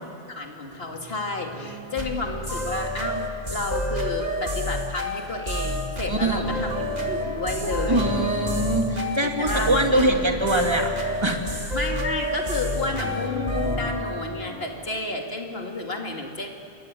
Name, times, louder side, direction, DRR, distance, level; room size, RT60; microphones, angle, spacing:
voice 1, 0.0-3.2 3.5-8.1 9.2-10.2 11.7-16.5, left 2 dB, 70° left, 2 dB, 2.7 m, -31 dB
sound 1, 0.7-4.7 5.1-14.5, left 1 dB, 35° left, 5.7 m, -38 dB
sound 2, 2.0-13.8, left 1 dB, 40° right, 2.7 m, -29 dB
voice 2, 6.1-6.5 7.9-10.9 11.2-11.7, right 1 dB, 25° right, 2 dB, 2.5 m, -23 dB
28.0 x 22.5 x 9.2 m, 2.6 s
omnidirectional pair, 1.0 m